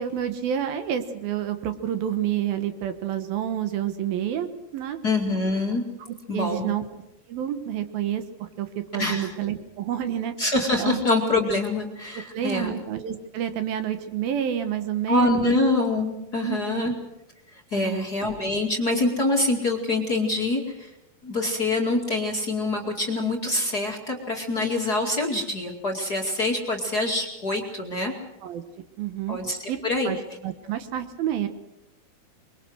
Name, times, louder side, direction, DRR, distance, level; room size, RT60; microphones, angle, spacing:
voice 1, 0.0-5.0 6.3-6.8 7.3-8.7 8.9-10.3 10.8-11.0 12.3-15.4 16.4-16.9 17.7-18.1 28.4-28.6 29.0-29.4 29.7-29.8 30.1-30.2 30.4-31.5, right 10 dB, 70° right, 9 dB, 2.9 m, -29 dB
voice 2, 5.0-5.8 6.3-6.7 8.9-9.3 10.4-12.7 15.1-16.9 17.5-20.9 21.2-28.1 29.3-29.6 29.8-30.1, left 2 dB, 30° left, 1 dB, 2.1 m, -25 dB
25.0 x 23.0 x 6.4 m, 0.89 s
omnidirectional pair, 4.5 m